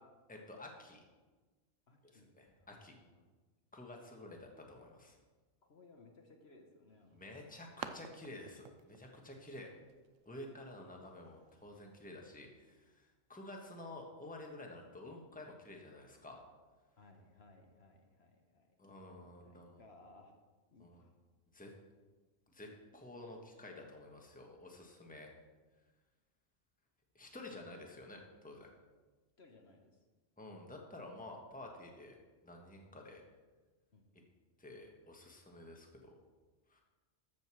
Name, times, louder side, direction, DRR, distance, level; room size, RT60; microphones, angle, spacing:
voice 1, 0.3-1.0 2.0-2.9 3.7-5.2 7.1-9.7 10.2-16.4 18.8-19.8 20.8-21.0 21.5-21.7 22.5-25.3 27.1-28.7 30.4-32.2 32.4-33.2 34.6-36.1 36.7-36.8, left 2 dB, 5° left, 1 dB, 1.3 m, -51 dB
voice 2, 1.9-2.3 2.6-3.3 5.7-7.4 17.0-20.3 20.7-21.1 29.4-29.9 33.9-34.2, left 2 dB, 55° left, 3 dB, 1.3 m, -62 dB
sound 1, 6.9-12.0, right 8 dB, 80° right, 1.0 m, -53 dB
13.5 x 5.3 x 6.2 m, 1.3 s
omnidirectional pair, 1.3 m